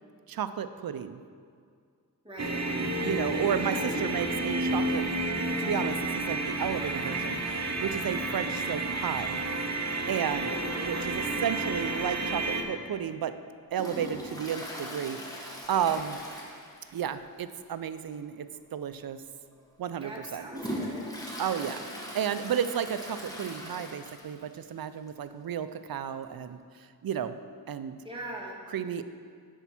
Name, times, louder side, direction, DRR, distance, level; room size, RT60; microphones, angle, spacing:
voice 1, 0.3-1.2 3.0-5.3 5.6-9.4 10.1-10.6 10.8-13.3 13.7-16.2 16.9-19.2 19.8-20.5 21.4-21.8 22.1-26.6 27.0-27.4 27.7-28.0 28.7-29.0, right 8 dB, 65° right, 12 dB, 0.5 m, -33 dB
sound 1, 2.4-12.6, right 2 dB, 45° right, 1.0 m, -31 dB
voice 2, 3.6-3.9 10.5-11.0 20.0-21.1 28.0-28.6, right 1 dB, 15° right, -3 dB, 1.9 m, -41 dB
Toilet flush, 13.7-17.2 17.4-17.5 18.0-18.1 18.9-19.0 19.6-24.5 24.8-24.9 25.1-25.2 26.2-26.3, equal, 10° left, 1.4 m, -40 dB
10.0 x 4.5 x 5.9 m, 2.1 s
wide cardioid pair, 70°, 38 cm